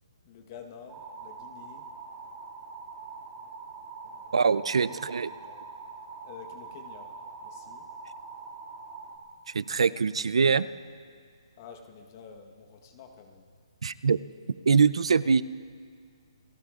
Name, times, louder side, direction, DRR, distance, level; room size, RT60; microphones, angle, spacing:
voice 1, 0.2-1.9 4.0-4.4 4.9-5.0 5.3-5.6 6.2-7.2 7.4-7.9 11.6-13.5, left 6 dB, 35° left, 4 dB, 1.1 m, -49 dB
sound 1, 0.9-9.2, right 4 dB, 15° right, 2.2 m, -44 dB
voice 2, 4.3-5.3 9.5-10.7 13.8-14.2 14.7-15.4, right 5 dB, 80° right, 16 dB, 0.5 m, -23 dB
29.0 x 19.0 x 2.4 m, 2.1 s
hypercardioid pair, 160°, 3 cm